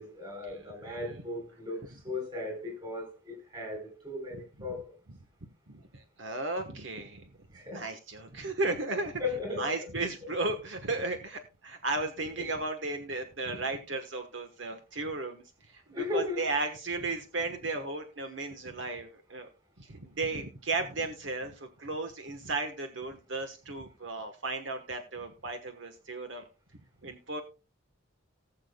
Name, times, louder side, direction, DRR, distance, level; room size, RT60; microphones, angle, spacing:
voice 1, 0.0-4.9 7.5-7.9 9.2-9.7 12.4-12.5 15.9-16.5, left 3 dB, 25° right, 3.6 m, -36 dB
voice 2, 5.7-7.3 7.7-9.2 9.6-15.8 16.1-19.5 19.8-26.4 27.0-27.4, right 3 dB, 65° right, 1.2 m, -35 dB
19.0 x 6.9 x 2.2 m
head